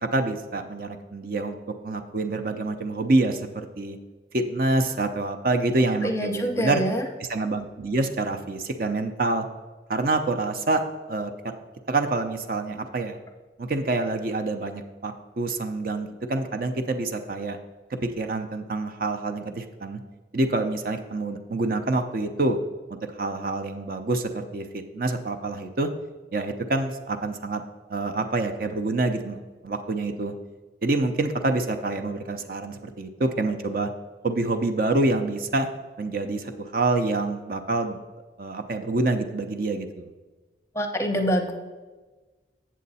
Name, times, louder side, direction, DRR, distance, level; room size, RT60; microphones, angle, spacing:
voice 1, 0.0-1.6 1.8-4.0 4.3-6.8 7.3-9.5 9.9-10.8 11.1-11.5 11.9-13.2 13.6-17.6 18.2-20.0 20.3-22.6 23.2-25.9 26.3-27.6 27.9-29.4 29.6-30.3 30.8-33.9 34.2-35.7 36.0-38.0 38.4-40.1, right 2 dB, 50° right, 6 dB, 0.5 m, -26 dB
voice 2, 6.0-7.0 40.8-41.5, equal, 15° left, 5 dB, 0.6 m, -25 dB
7.7 x 7.4 x 4.1 m, 1.3 s
head